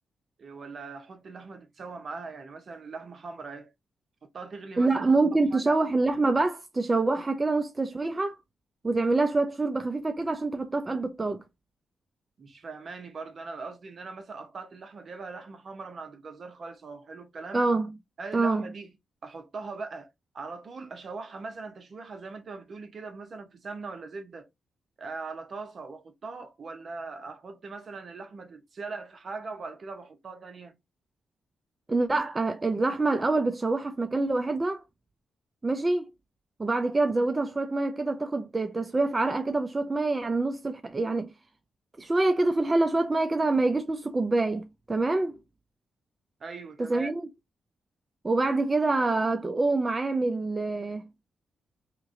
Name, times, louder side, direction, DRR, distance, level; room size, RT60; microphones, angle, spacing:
voice 1, 0.4-3.7 4.3-4.9 5.3-5.7 12.4-17.6 18.2-18.9 19.2-24.5 25.0-30.7 46.4-47.1, right 4 dB, 55° right, 0.8 m, -41 dB
voice 2, 4.8-8.4 8.8-11.4 17.5-17.9 18.3-18.7 31.9-34.8 35.6-36.1 36.6-41.3 42.0-45.4 46.8-47.3 48.2-51.1, right 3 dB, 25° right, 0.5 m, -26 dB
2.9 x 2.5 x 3.7 m
cardioid pair, 65°, 0 cm